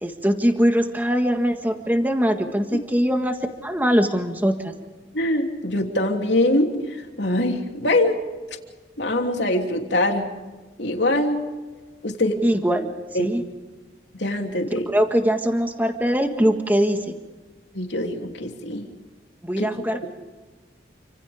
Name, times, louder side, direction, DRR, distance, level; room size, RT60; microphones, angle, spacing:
voice 1, 0.0-3.4 3.6-4.7 12.4-12.9 13.2-13.4 14.9-17.1 19.4-20.1, equal, 10° right, 5 dB, 1.7 m, -22 dB
voice 2, 5.1-8.2 9.0-10.3 10.8-11.4 12.0-12.4 13.1-13.2 14.1-14.8 17.7-18.9 19.6-19.7, left 1 dB, 85° left, 3 dB, 3.2 m, -23 dB
29.5 x 26.5 x 3.6 m, 1.3 s
head